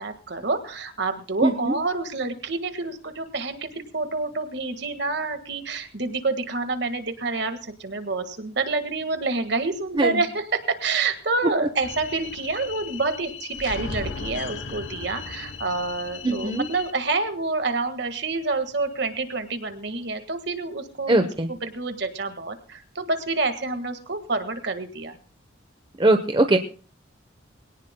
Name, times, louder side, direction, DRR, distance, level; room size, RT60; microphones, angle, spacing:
voice 1, 0.0-21.1 21.5-25.2, right 3 dB, 60° right, 8 dB, 1.7 m, -28 dB
voice 2, 1.4-1.8 10.0-10.2 16.2-16.7 21.1-21.5 26.0-26.6, right 2 dB, 25° right, 6 dB, 0.9 m, -21 dB
sound 1, 11.8-16.9, left 4 dB, 80° left, 1.0 m, -36 dB
22.0 x 18.0 x 2.2 m, 0.39 s
head